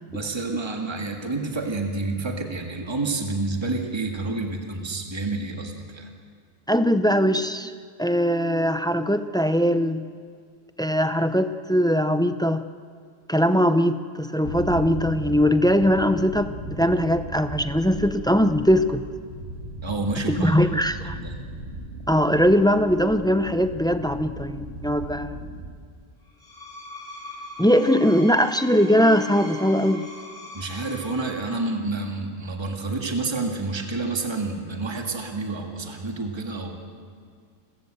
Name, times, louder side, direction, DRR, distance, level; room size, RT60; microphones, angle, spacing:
voice 1, 0.1-6.1 19.8-20.5 21.0-21.4 30.5-36.8, right 3 dB, 20° right, 2 dB, 1.9 m, -29 dB
voice 2, 6.7-7.7 8.0-10.1 10.8-12.6 13.3-19.0 20.3-21.2 22.1-25.4 27.6-30.1, equal, 5° left, 10 dB, 0.3 m, -21 dB
sound 1, 14.4-25.7, right 2 dB, 65° right, 2.7 m, -37 dB
Screech, 26.3-31.7, equal, 85° left, 4.5 m, -41 dB
30.0 x 14.0 x 7.9 m, 2.1 s
omnidirectional pair, 1.3 m